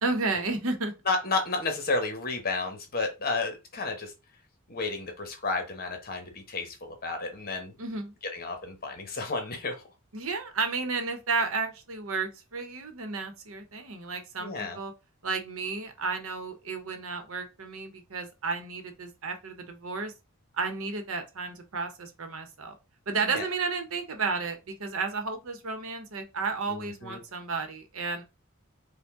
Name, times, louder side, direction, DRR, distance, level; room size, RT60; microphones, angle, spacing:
voice 1, 0.0-0.9 7.8-8.1 10.1-14.9 15.2-20.1 20.5-22.8 23.1-28.2, right 4 dB, 70° right, 0.9 m, -32 dB
voice 2, 1.1-4.1 4.7-7.7 8.3-9.9 14.4-14.8 23.2-23.5 26.7-27.2, left 3 dB, 45° left, 1.0 m, -32 dB
5.1 x 2.2 x 3.6 m
head